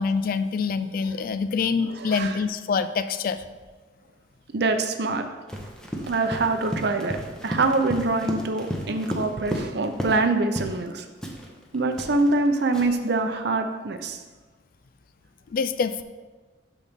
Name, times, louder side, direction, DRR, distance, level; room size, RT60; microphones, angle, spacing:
voice 1, 0.0-3.4 15.5-16.0, left 5 dB, 50° left, 11 dB, 0.3 m, -25 dB
voice 2, 2.0-2.4 4.5-5.2 6.1-7.2 7.4-11.1 11.7-14.2, right 3 dB, 60° right, 7 dB, 0.6 m, -24 dB
Run, 5.5-10.3 10.6-10.8 11.2-13.1, equal, 5° left, 0.8 m, -33 dB
11.5 x 4.1 x 3.6 m, 1.3 s
head